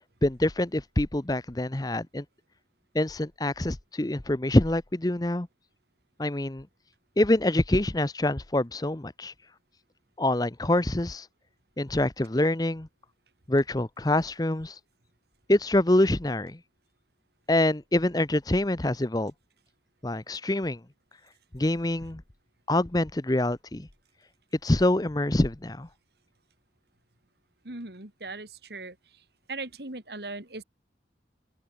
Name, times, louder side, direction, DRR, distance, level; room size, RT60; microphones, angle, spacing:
voice 1, 0.2-2.2 2.9-5.5 6.2-6.7 7.2-9.3 10.2-11.3 11.8-12.9 13.5-14.8 15.5-16.6 17.5-19.3 20.0-20.8 21.5-22.2 22.7-23.9 24.6-25.9, left 1 dB, 20° left, 0.8 m, -25 dB
voice 2, 27.6-29.2 29.5-30.6, right 3 dB, 65° right, 2.9 m, -39 dB
open air
head